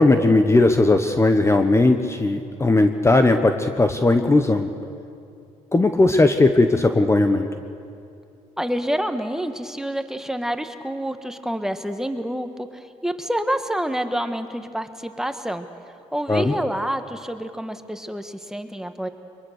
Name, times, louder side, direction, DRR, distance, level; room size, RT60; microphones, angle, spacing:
voice 1, 0.0-4.7 5.7-7.5 16.3-16.5, left 2 dB, 20° left, 7 dB, 1.1 m, -17 dB
voice 2, 8.6-15.7 16.1-19.1, equal, 5° right, 8 dB, 1.5 m, -28 dB
23.0 x 22.5 x 6.7 m, 2.5 s
supercardioid pair, 75°, 14 cm